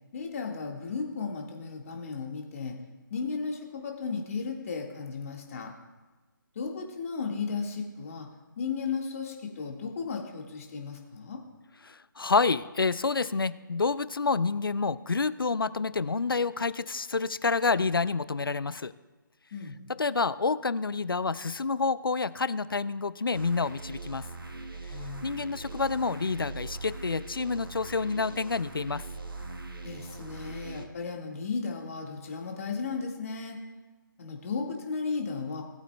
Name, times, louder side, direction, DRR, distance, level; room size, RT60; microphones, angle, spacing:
voice 1, 0.1-2.7 3.1-5.7 6.5-8.3 8.6-11.4 19.5-19.7 24.9-25.3 29.8-33.6 34.2-35.6, left 5 dB, 40° left, 1 dB, 1.6 m, -35 dB
voice 2, 11.8-18.9 20.0-24.3 25.2-29.0, left 4 dB, 85° left, 16 dB, 0.5 m, -28 dB
sound 1, 23.3-30.9, right 3 dB, 85° right, 1.2 m, -41 dB
19.0 x 8.3 x 2.2 m, 1.3 s
figure-of-eight pair, 150°, 11 cm